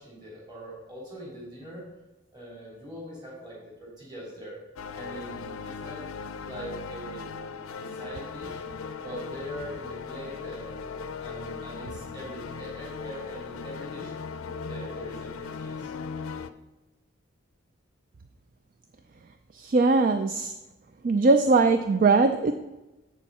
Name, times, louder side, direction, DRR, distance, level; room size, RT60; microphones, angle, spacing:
voice 1, 0.0-1.9 2.3-4.6 4.9-6.0 6.4-8.6 9.0-14.1 14.4-15.9, right 1 dB, 20° right, -5 dB, 3.3 m, -42 dB
sound 1, 4.8-16.5, left 5 dB, 85° left, 0.5 m, -38 dB
voice 2, 19.6-20.5 21.0-22.5, right 3 dB, 40° right, 8 dB, 0.4 m, -21 dB
8.1 x 7.2 x 4.2 m, 1.1 s
head